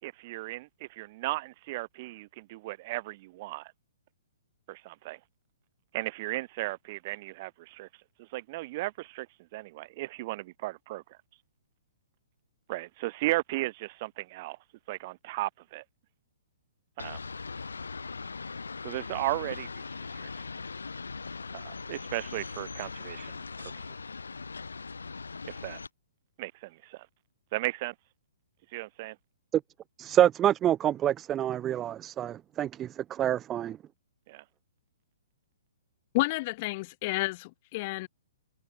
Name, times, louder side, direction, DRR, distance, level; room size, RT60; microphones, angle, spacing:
voice 1, 0.0-3.7 4.7-5.2 5.9-7.9 8.2-9.3 9.5-11.0 12.7-14.6 14.9-15.8 17.0-17.2 18.8-19.8 20.1-20.3 21.5-23.7 25.6-25.8 26.4-27.1 27.5-27.9 28.7-29.2 34.3-34.4, right 20 dB, 45° right, 3.6 m, -35 dB
sound 1, 17.0-25.9, left 4 dB, 90° left, 6.0 m, -40 dB
voice 2, 30.0-33.8, right 11 dB, 20° right, 0.4 m, -27 dB
voice 3, 36.1-38.1, left 22 dB, 40° left, 2.4 m, -30 dB
hypercardioid pair, 130°, 0 cm